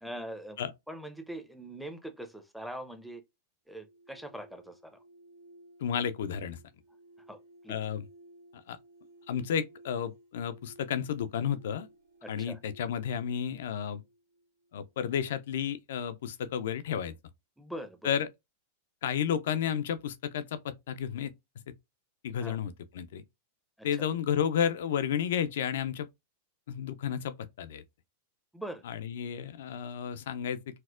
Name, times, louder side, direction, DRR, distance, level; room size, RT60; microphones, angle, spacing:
voice 1, 0.0-0.6 0.9-3.2 3.7-5.0 7.3-7.4 7.6-7.8 12.2-12.6 17.6-18.2 22.4-22.6 23.8-24.1 28.5-28.8, right 1 dB, ahead, 0.5 m, -42 dB
sound 1, 3.7-14.7, right 1 dB, 85° right, 0.9 m, -57 dB
voice 2, 5.8-6.6 7.7-8.0 8.7-8.8 9.3-11.9 12.3-14.0 14.7-17.1 18.0-18.3 19.0-21.3 22.2-23.2 23.8-26.1 26.7-27.8 28.9-30.8, left 8 dB, 70° left, 0.3 m, -32 dB
4.2 x 2.0 x 2.4 m
hypercardioid pair, 110°, 0 cm